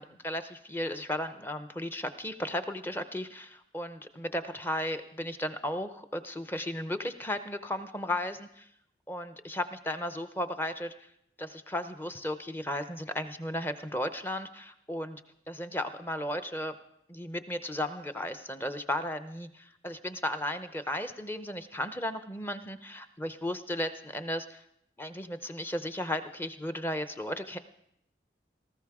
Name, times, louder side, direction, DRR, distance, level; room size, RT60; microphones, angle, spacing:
voice 1, 0.0-8.7 9.1-10.9 11.4-15.2 15.5-16.7 17.1-24.6 25.0-27.6, left 1 dB, 10° left, 10 dB, 0.6 m, -35 dB
18.5 x 14.5 x 3.6 m, 0.75 s
head